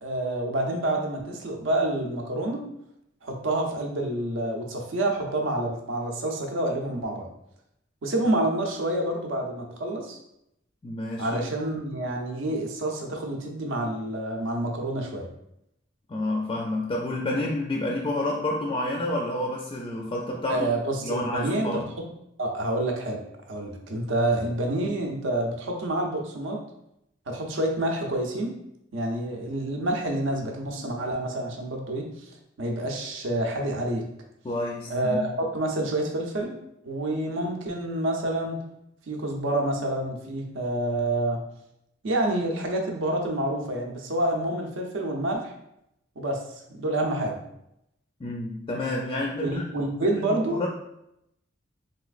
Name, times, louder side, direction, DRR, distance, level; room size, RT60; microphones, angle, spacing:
voice 1, 0.0-2.6 3.2-7.3 8.0-10.2 11.2-15.3 20.5-21.8 22.4-23.2 23.5-26.6 27.3-28.5 28.9-32.0 32.6-34.0 34.9-36.6 36.8-38.6 39.1-41.4 42.0-45.5 46.2-46.4 46.7-47.4 49.4-50.7, right 1 dB, 80° right, 2 dB, 0.6 m, -28 dB
voice 2, 10.8-11.4 16.1-20.7 21.0-21.9 34.4-35.3 48.2-49.6 50.0-50.7, left 1 dB, 25° left, -1 dB, 0.4 m, -29 dB
3.2 x 3.0 x 2.4 m, 0.80 s
head